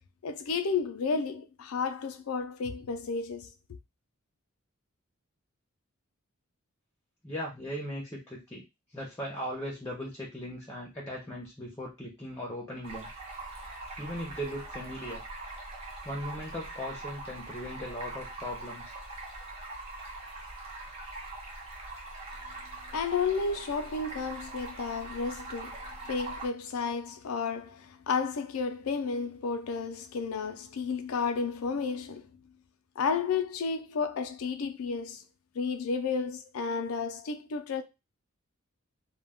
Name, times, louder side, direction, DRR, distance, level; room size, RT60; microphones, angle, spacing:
voice 1, 0.2-3.5 22.4-22.7 22.9-25.8 26.1-32.3 33.0-35.2 35.5-37.8, left 5 dB, 85° left, 0.4 m, -32 dB
voice 2, 7.2-8.6 8.9-13.1 14.0-15.2 16.0-18.9, equal, 15° left, 0.5 m, -38 dB
Stream, 12.8-26.5, right 2 dB, 30° right, 0.7 m, -42 dB
2.2 x 2.1 x 3.4 m
head